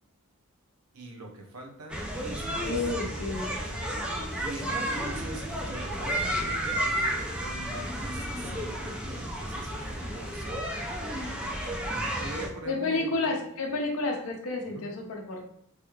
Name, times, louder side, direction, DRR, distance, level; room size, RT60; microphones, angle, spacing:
voice 1, 0.9-3.8 4.4-7.0 7.4-10.7 12.2-13.4 14.7-14.9, right 1 dB, 85° right, 2 dB, 0.7 m, -44 dB
sound 1, 1.9-12.5, right 1 dB, 5° right, 0.4 m, -32 dB
voice 2, 2.6-3.5 12.7-15.4, left 3 dB, 65° left, 1 dB, 0.6 m, -30 dB
3.3 x 3.0 x 2.3 m, 0.74 s
head